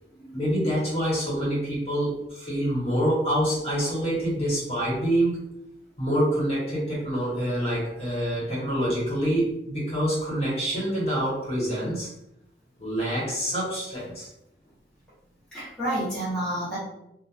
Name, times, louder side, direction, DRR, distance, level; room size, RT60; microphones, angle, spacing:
voice 1, 0.3-5.4 6.0-12.1 12.8-14.3, right 1 dB, 35° left, -7 dB, 1.1 m, -26 dB
voice 2, 15.5-16.8, right 1 dB, 5° left, -12 dB, 0.8 m, -30 dB
2.8 x 2.1 x 2.4 m, 0.82 s
head